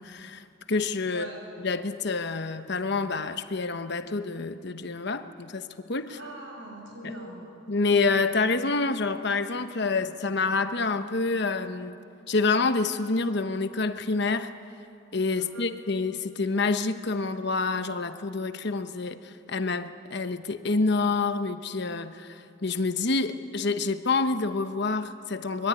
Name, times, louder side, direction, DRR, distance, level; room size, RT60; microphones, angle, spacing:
voice 1, 0.0-1.3 1.6-6.2 7.0-7.1 7.7-12.0 12.3-14.5 15.1-25.7, left 3 dB, 55° left, 9 dB, 1.1 m, -27 dB
voice 2, 6.1-7.5 15.4-15.7, right 2 dB, 70° right, 1 dB, 7.1 m, -41 dB
25.0 x 21.5 x 9.7 m, 2.5 s
head